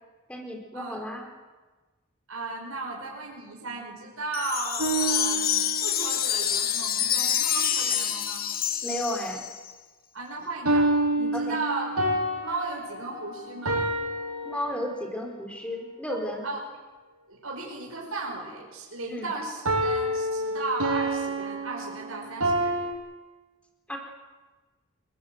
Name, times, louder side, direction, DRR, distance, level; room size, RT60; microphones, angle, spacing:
voice 1, 0.3-1.3 8.8-9.5 11.3-11.6 14.4-16.4 19.1-19.3 23.9-24.0, equal, 5° left, 2 dB, 4.2 m, -33 dB
voice 2, 2.3-8.4 10.1-10.9 11.2-11.9 12.4-13.8 16.4-16.6 17.3-22.8, right 3 dB, 70° right, -1 dB, 5.2 m, -35 dB
Wind chime, 4.3-9.7, left 9 dB, 40° left, 1.4 m, -27 dB
sound 1, 4.8-6.2 10.7-15.2 19.7-22.9, right 1 dB, 90° right, 6.4 m, -28 dB
29.5 x 19.5 x 8.0 m, 1.3 s
head